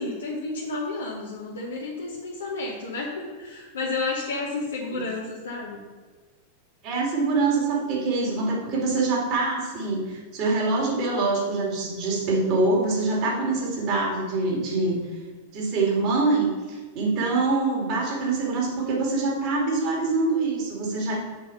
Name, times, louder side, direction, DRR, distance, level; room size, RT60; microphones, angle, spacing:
voice 1, 0.0-5.8, left 3 dB, 65° left, -3 dB, 1.0 m, -31 dB
voice 2, 6.8-15.0 15.5-16.6 16.9-21.2, right 3 dB, 40° right, -2 dB, 2.4 m, -24 dB
6.2 x 5.0 x 5.9 m, 1.4 s
figure-of-eight pair, 90°, 0 cm